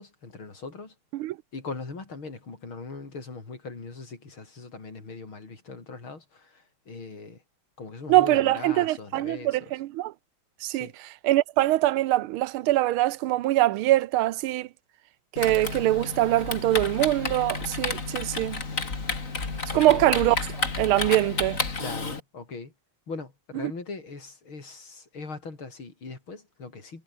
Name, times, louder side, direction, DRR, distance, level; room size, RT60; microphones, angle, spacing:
voice 1, 0.0-1.0 1.5-7.4 7.8-9.7 10.7-10.9 19.7-20.1 21.8-22.7 23.1-27.0, left 4 dB, 75° left, 5.5 m, -40 dB
voice 2, 8.1-10.1 10.6-10.9 11.2-14.7 15.3-18.6 19.7-21.6, right 15 dB, 90° right, 1.6 m, -23 dB
Typing, 15.4-22.2, left 3 dB, 40° left, 3.3 m, -31 dB
omnidirectional pair, 2.3 m